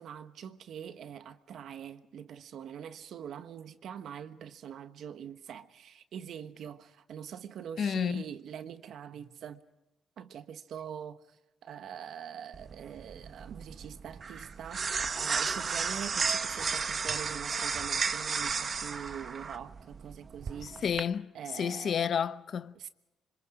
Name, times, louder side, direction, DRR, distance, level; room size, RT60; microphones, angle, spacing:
voice 1, 0.0-9.6 10.2-20.8 21.3-22.1 22.7-22.9, right 8 dB, 70° right, 1.2 m, -44 dB
voice 2, 7.8-8.2 20.6-22.7, left 7 dB, 55° left, 0.7 m, -31 dB
sound 1, 12.5-21.0, right 5 dB, 45° right, 1.2 m, -33 dB
26.5 x 25.5 x 5.0 m
cardioid pair, 90°, 0 cm